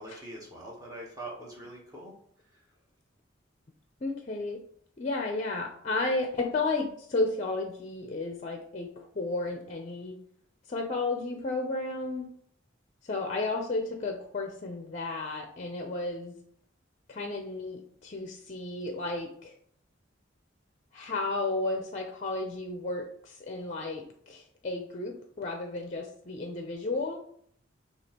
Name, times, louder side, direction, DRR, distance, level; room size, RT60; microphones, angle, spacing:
voice 1, 0.0-2.1 2.5-2.6, right 1 dB, 20° right, -3 dB, 1.0 m, -43 dB
voice 2, 4.0-4.6 5.0-10.2 10.7-12.3 13.0-16.3 17.1-19.5 20.9-27.2, left 2 dB, 35° left, 3 dB, 0.5 m, -33 dB
6.1 x 2.8 x 2.9 m, 0.63 s
head